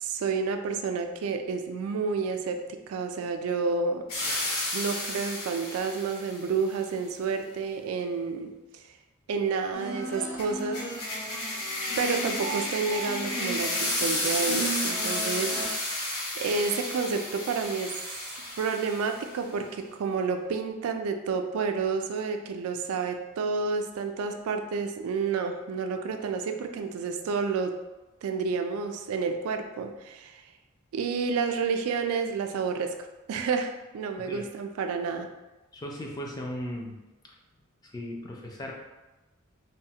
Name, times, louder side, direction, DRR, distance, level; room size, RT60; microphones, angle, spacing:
voice 1, 0.0-4.0 4.7-8.8 9.3-10.9 12.0-17.9 18.2-18.3 18.6-27.7 28.2-30.4 30.9-32.9 33.3-35.3, right 5 dB, 80° right, 6 dB, 0.3 m, -30 dB
sound 1, 4.1-6.4 10.4-19.3, left 1 dB, 85° left, 0.9 m, -32 dB
sound 2, 9.7-15.6, right 2 dB, 55° left, 1.3 m, -36 dB
voice 2, 35.7-37.0 37.8-38.7, equal, 20° left, -1 dB, 0.3 m, -37 dB
3.1 x 2.1 x 2.7 m, 1.1 s
head